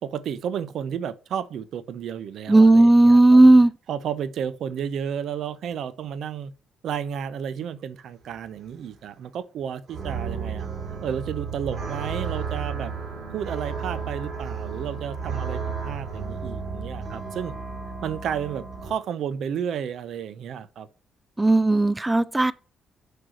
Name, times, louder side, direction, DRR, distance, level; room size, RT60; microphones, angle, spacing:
voice 1, 0.0-3.4 3.9-6.5 6.8-12.9 13.3-17.6 18.0-20.9, right 8 dB, 70° right, 0.7 m, -32 dB
voice 2, 2.5-3.7 21.4-22.5, right 2 dB, 15° right, 0.3 m, -15 dB
sound 1, 9.9-18.9, right 5 dB, 55° right, 2.9 m, -33 dB
6.4 x 4.7 x 6.2 m
cardioid pair, 90°, 0 cm